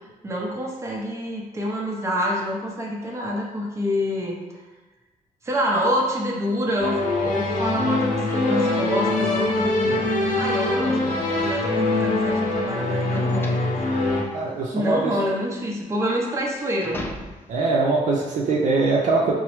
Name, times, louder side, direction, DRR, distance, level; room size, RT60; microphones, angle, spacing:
voice 1, 0.2-4.4 5.4-10.1 10.3-11.1 11.4-13.6 14.7-17.0, equal, 20° right, -2 dB, 0.7 m, -26 dB
sound 1, 6.8-14.2, left 2 dB, 75° left, 0.7 m, -23 dB
sound 2, 11.7-17.7, left 2 dB, 15° left, 0.3 m, -40 dB
voice 2, 14.3-15.1 17.5-19.3, right 3 dB, 70° right, -3 dB, 0.5 m, -22 dB
4.5 x 2.0 x 3.0 m, 1.2 s
cardioid pair, 115°, 14 cm